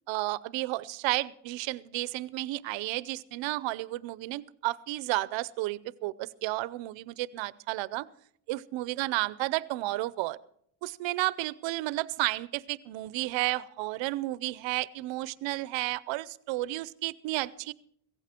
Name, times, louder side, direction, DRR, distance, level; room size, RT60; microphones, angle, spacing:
voice 1, 0.1-8.1 8.5-10.4 10.8-17.7, right 18 dB, 90° right, 19 dB, 0.7 m, -32 dB
16.5 x 15.0 x 4.4 m, 0.66 s
cardioid pair, 140°, 43 cm